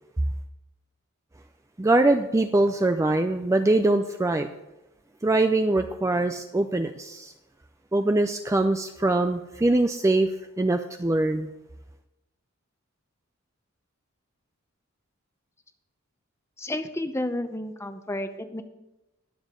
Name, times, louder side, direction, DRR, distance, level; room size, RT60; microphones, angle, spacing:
voice 1, 1.8-4.5 5.2-7.3 7.9-11.5, right 2 dB, 15° right, 7 dB, 0.4 m, -23 dB
voice 2, 16.6-18.6, left 1 dB, 10° left, 9 dB, 0.7 m, -31 dB
21.5 x 7.3 x 3.7 m, 0.98 s
head